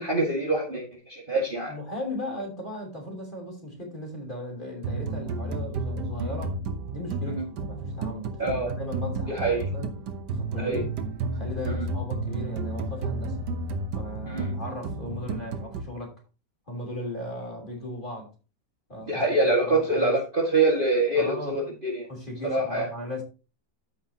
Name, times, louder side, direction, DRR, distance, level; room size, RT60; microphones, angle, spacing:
voice 1, 0.0-1.7 7.3-7.5 8.4-8.7 9.3-9.7 10.6-10.8 14.3-14.5 19.0-22.1 22.4-22.9, right 2 dB, 30° right, -2 dB, 2.0 m, -25 dB
voice 2, 1.7-6.6 6.9-9.9 10.3-10.9 11.3-13.5 13.9-16.2 16.7-18.3 18.9-19.2 19.6-20.1 21.1-21.6 22.1-23.2, left 1 dB, 25° left, -1 dB, 3.4 m, -37 dB
sound 1, 4.8-15.8, right 3 dB, 70° right, 1.6 m, -32 dB
14.0 x 5.8 x 2.9 m, 0.31 s
omnidirectional pair, 1.9 m